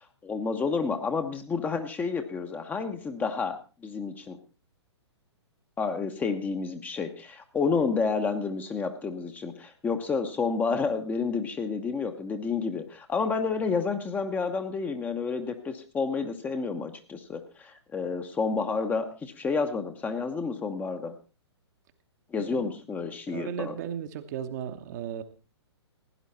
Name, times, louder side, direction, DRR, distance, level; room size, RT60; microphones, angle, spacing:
voice 1, 0.2-4.4 5.8-21.1 22.3-23.7, left 5 dB, 10° left, 6 dB, 1.1 m, -30 dB
voice 2, 23.3-25.2, right 9 dB, 40° right, 7 dB, 1.2 m, -35 dB
16.5 x 10.5 x 4.3 m, 0.34 s
figure-of-eight pair, 115°, 14 cm